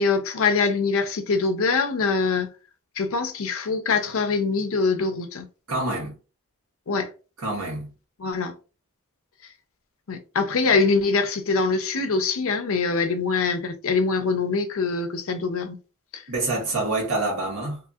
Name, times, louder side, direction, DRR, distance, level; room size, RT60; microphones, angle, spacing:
voice 1, 0.0-2.5 3.0-5.5 6.9-7.1 8.2-8.5 10.1-15.8 16.1-16.2, left 4 dB, 65° left, 0.5 m, -23 dB
voice 2, 5.7-6.1 7.4-7.9 16.3-17.8, right 2 dB, 85° right, 1.4 m, -26 dB
2.7 x 2.7 x 2.4 m
head